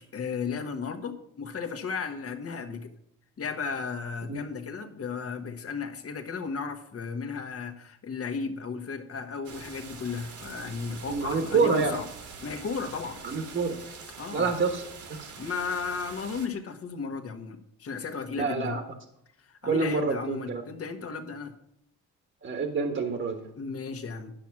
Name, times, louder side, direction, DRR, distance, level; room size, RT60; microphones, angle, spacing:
voice 1, 0.1-2.9 3.4-12.1 12.4-13.2 14.2-14.5 15.4-18.8 19.5-21.6 23.6-24.3, left 5 dB, 50° left, 7 dB, 1.4 m, -34 dB
sound 1, 9.4-16.5, right 5 dB, 70° right, 1.8 m, -44 dB
voice 2, 11.1-12.0 13.2-13.8 14.3-14.8 15.2-15.3 18.4-18.8 19.6-20.6 22.4-23.5, right 4 dB, 40° right, 5 dB, 1.3 m, -27 dB
10.5 x 6.1 x 5.9 m, 0.74 s
cardioid pair, 90°, 30 cm